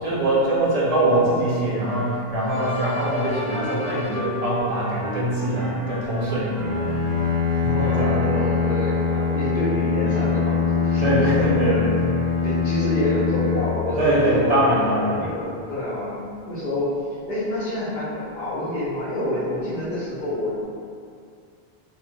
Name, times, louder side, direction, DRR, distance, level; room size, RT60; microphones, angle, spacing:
voice 1, 0.0-6.8 7.5-8.3 11.0-12.2 14.0-15.2, right 1 dB, 45° right, -7 dB, 0.6 m, -23 dB
Wind instrument woodwind instrument, 1.8-7.5, left 2 dB, 75° left, 0.9 m, -35 dB
sound 1, 2.5-4.4 5.6-6.4 7.8-8.8 10.1-10.9, left 1 dB, 15° left, 1.0 m, -37 dB
Bowed string instrument, 6.5-14.5, left 5 dB, 75° right, 0.9 m, -23 dB
voice 2, 7.7-11.5 12.4-14.6 14.9-16.2 16.5-16.9 17.3-20.6, left 1 dB, 55° left, -11 dB, 0.7 m, -27 dB
2.4 x 2.3 x 2.9 m, 2.3 s
omnidirectional pair, 1.0 m